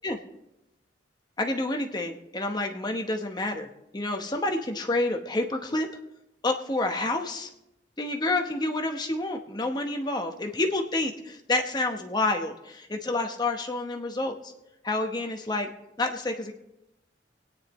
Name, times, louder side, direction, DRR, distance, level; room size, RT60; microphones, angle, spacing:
voice 1, 1.4-5.9 6.4-7.5 8.0-14.5 14.8-15.7 16.0-16.5, left 2 dB, 25° left, 4 dB, 0.9 m, -29 dB
25.0 x 9.6 x 3.1 m, 0.90 s
head